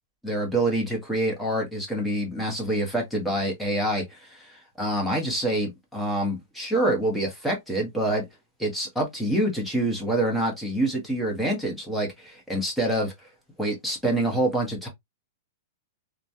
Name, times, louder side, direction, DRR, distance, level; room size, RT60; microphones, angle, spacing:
voice 1, 0.2-8.2 8.6-13.1 13.6-14.9, right 1 dB, 5° left, 1.1 m, -26 dB
3.1 x 2.2 x 2.6 m
hypercardioid pair, 150°, 0 cm